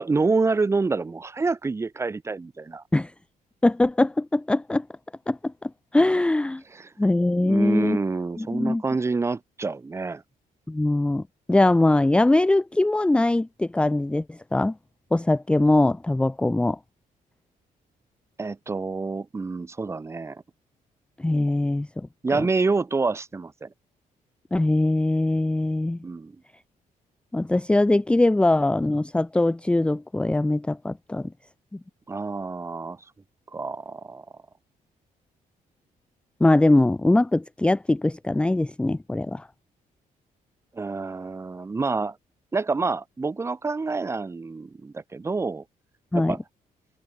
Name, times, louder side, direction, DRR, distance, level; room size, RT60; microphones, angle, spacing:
voice 1, 0.0-2.8 6.7-6.9 7.4-10.2 18.4-20.4 22.2-23.7 26.0-26.3 32.1-33.0 33.5-34.3 40.7-42.2 42.5-45.6 46.1-46.4, right 4 dB, 20° right, 2.4 m, -27 dB
voice 2, 3.6-4.9 5.3-6.6 7.0-8.0 8.4-8.8 10.7-11.2 11.5-14.7 15.1-16.8 21.2-22.1 22.3-22.4 24.5-26.0 27.3-31.3 36.4-39.5 46.1-46.4, left 2 dB, 5° left, 0.8 m, -22 dB
cardioid pair, 175°, 15 cm